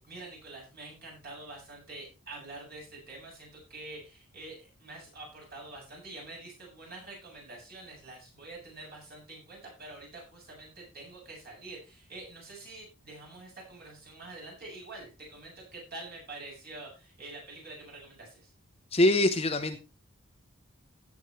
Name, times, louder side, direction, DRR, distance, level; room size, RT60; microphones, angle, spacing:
voice 1, 0.0-18.5, right 2 dB, 45° right, -1 dB, 7.9 m, -46 dB
voice 2, 18.9-19.8, left 1 dB, 25° left, 8 dB, 0.8 m, -23 dB
17.0 x 8.2 x 3.2 m, 0.30 s
head